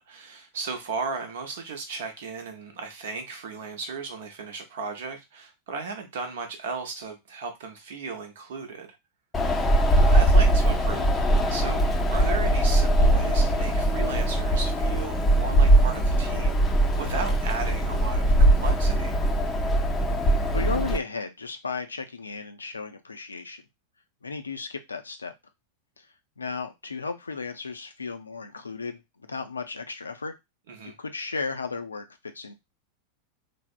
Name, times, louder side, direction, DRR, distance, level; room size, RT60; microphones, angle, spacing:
voice 1, 0.0-8.9 9.9-11.1 11.5-11.8 12.1-19.2 30.7-31.0, right 4 dB, 55° right, 5 dB, 0.7 m, -35 dB
Wind, 9.3-21.0, right 1 dB, 15° left, 0.5 m, -21 dB
voice 2, 20.5-23.6 24.2-25.3 26.0-26.1 26.4-29.0 29.3-30.3 30.8-32.5, left 4 dB, 75° left, 7 dB, 0.4 m, -34 dB
3.3 x 2.0 x 2.4 m, 0.21 s
figure-of-eight pair, 90°, 0 cm